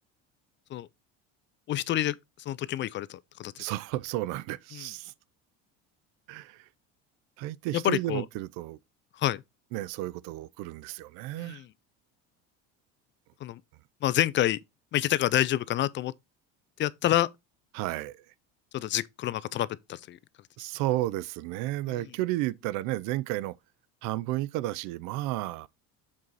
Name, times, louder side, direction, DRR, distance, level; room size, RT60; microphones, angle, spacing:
voice 1, 1.7-2.2 2.5-3.5 4.7-4.8 7.7-8.2 9.2-9.4 11.4-11.6 13.4-13.6 14.0-14.6 14.9-16.1 16.8-17.3 18.7-20.2, left 13 dB, 35° left, 0.4 m, -27 dB
voice 2, 3.6-5.1 6.3-6.7 7.4-8.8 9.7-11.6 17.7-18.2 20.6-23.6 24.0-25.7, right 16 dB, 70° right, 0.6 m, -32 dB
7.4 x 4.6 x 4.0 m
cardioid pair, 130°, 33 cm